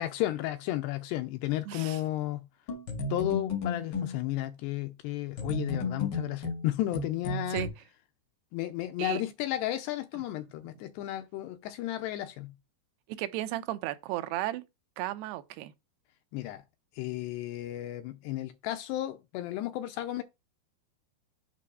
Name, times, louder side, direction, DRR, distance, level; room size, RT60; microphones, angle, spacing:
voice 1, 0.0-2.4 3.1-7.7 8.5-12.5 16.3-16.6 17.0-20.2, left 14 dB, 85° left, 2.5 m, -33 dB
voice 2, 1.7-2.0 7.5-7.7 9.0-9.2 13.2-14.6 15.0-15.7, right 15 dB, 80° right, 2.5 m, -34 dB
sound 1, 2.7-4.2 5.4-7.7, left 3 dB, 65° left, 1.0 m, -33 dB
8.4 x 3.0 x 6.3 m
omnidirectional pair, 5.4 m